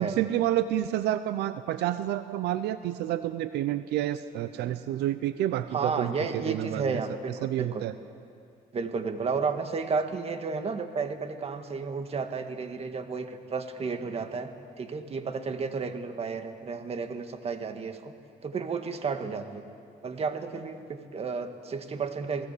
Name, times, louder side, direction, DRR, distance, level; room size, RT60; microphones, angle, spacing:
voice 1, 0.0-7.0 7.4-7.9, right 13 dB, 80° right, 12 dB, 0.8 m, -29 dB
voice 2, 5.7-7.8 8.7-14.5 14.8-18.1 18.4-19.6 20.0-22.5, right 5 dB, 35° right, 7 dB, 1.9 m, -32 dB
28.0 x 18.5 x 8.4 m, 2.4 s
cardioid pair, 110°, 17 cm